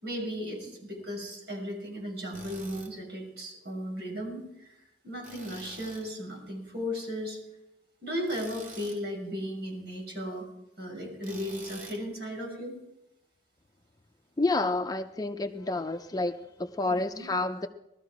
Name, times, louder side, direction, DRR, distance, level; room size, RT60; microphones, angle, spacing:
voice 1, 0.0-4.4 5.0-7.4 8.0-10.5 10.8-12.7 16.9-17.3, equal, 60° right, 0 dB, 6.1 m, -36 dB
Tools, 2.3-2.9 5.2-6.1 8.3-9.0 11.2-12.0, right 2 dB, 45° right, 3.0 m, -47 dB
voice 2, 14.4-17.7, left 2 dB, 20° left, 7 dB, 0.5 m, -29 dB
19.0 x 13.0 x 4.8 m, 0.87 s
head